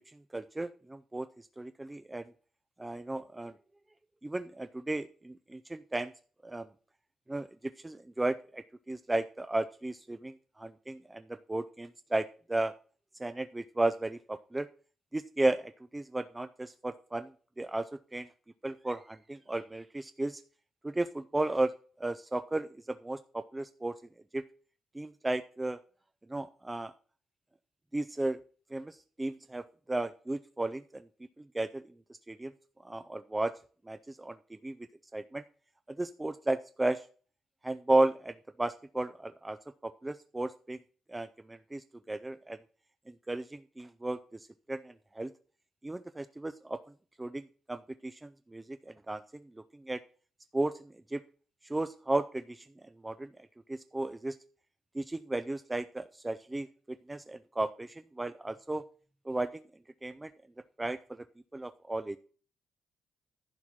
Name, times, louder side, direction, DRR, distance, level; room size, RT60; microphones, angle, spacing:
voice 1, 0.3-1.3 1.6-2.2 2.8-3.5 4.2-6.1 6.4-6.7 7.3-7.5 7.8-12.7 13.2-14.7 15.1-17.3 17.6-17.9 18.1-18.3 18.6-20.4 20.8-21.7 22.0-23.9 24.3-24.4 24.9-25.8 26.3-26.9 27.9-28.4 28.7-31.1 31.5-31.8 32.3-32.5 32.8-33.5 33.9-34.4 34.6-34.8 35.1-35.4 36.0-37.0 37.6-39.6 40.0-40.8 41.1-42.6 43.1-44.4 44.7-45.3 45.8-46.8 47.2-47.4 47.7-49.2 49.9-50.0 50.5-51.2 51.7-52.7 53.0-53.3 53.7-54.4 54.9-58.8 59.3-59.6 60.0-60.3 60.8-61.0 61.5-62.2, right 2 dB, 15° right, 11 dB, 0.4 m, -34 dB
11.0 x 4.3 x 6.3 m, 0.42 s
cardioid pair, 90°, 0 cm